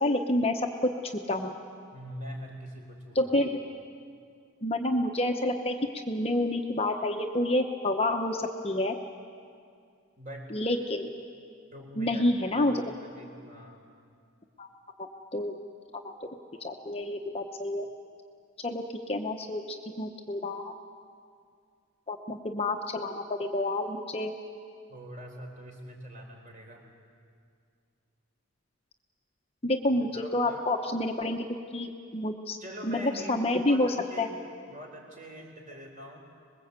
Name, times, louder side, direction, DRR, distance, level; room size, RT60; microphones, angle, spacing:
voice 1, 0.0-0.9 1.3-1.5 3.1-3.5 4.6-5.8 6.1-8.9 10.5-11.1 12.0-12.8 14.6-14.7 15.0-15.5 15.9-16.1 16.6-17.9 18.6-20.7 22.1-24.3 29.6-32.6 32.8-34.3, left 1 dB, 25° left, 4 dB, 0.9 m, -29 dB
voice 2, 1.9-3.4 10.2-10.6 11.7-12.8 13.0-13.8 24.9-26.9 30.1-30.6 32.6-34.4 34.7-36.2, equal, 35° right, 1 dB, 4.3 m, -44 dB
25.0 x 21.0 x 8.2 m, 2.3 s
head